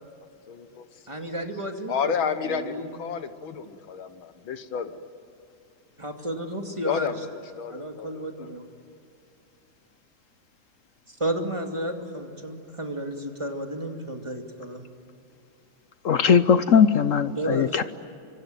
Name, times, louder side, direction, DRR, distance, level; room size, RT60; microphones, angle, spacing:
voice 1, 0.5-0.9 1.4-1.5 1.9-5.1 6.8-8.5, left 7 dB, 90° left, 10 dB, 2.1 m, -31 dB
voice 2, 1.1-3.0 6.0-7.1 7.6-8.7 11.1-14.9 17.4-17.8, right 1 dB, 15° right, 3 dB, 2.3 m, -32 dB
voice 3, 16.0-17.8, left 7 dB, 60° left, 12 dB, 0.8 m, -19 dB
26.0 x 24.0 x 9.1 m, 2.7 s
omnidirectional pair, 2.1 m